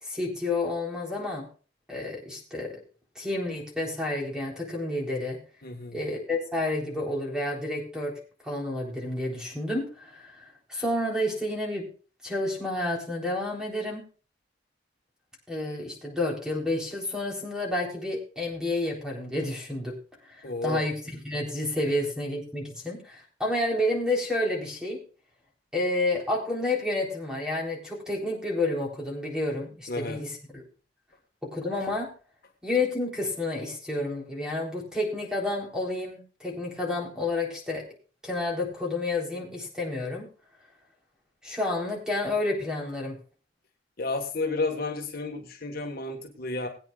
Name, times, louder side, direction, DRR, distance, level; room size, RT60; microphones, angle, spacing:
voice 1, 0.0-1.5 1.9-2.8 3.2-5.4 5.9-8.2 8.4-11.9 12.2-14.0 15.5-19.9 20.2-25.0 25.7-30.6 31.4-32.1 32.6-37.8 38.2-40.3 41.4-43.2, left 2 dB, 5° right, -1 dB, 3.9 m, -30 dB
voice 2, 5.6-6.0 20.4-20.8 29.9-30.2 44.0-46.7, left 3 dB, 55° left, 2 dB, 1.6 m, -31 dB
21.0 x 9.1 x 2.4 m, 0.38 s
head